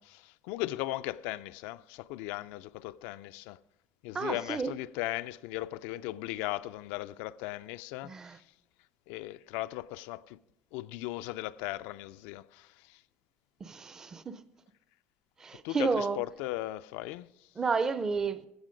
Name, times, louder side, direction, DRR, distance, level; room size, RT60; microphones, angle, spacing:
voice 1, 0.0-3.6 4.0-8.4 9.1-10.4 10.7-13.0 15.6-17.5, left 17 dB, 80° left, 0.4 m, -37 dB
voice 2, 4.1-4.7 8.0-8.4 13.6-14.4 15.4-16.2 17.6-18.5, right 4 dB, 15° right, 0.4 m, -31 dB
15.0 x 8.1 x 5.1 m
cardioid pair, 175°, 4 cm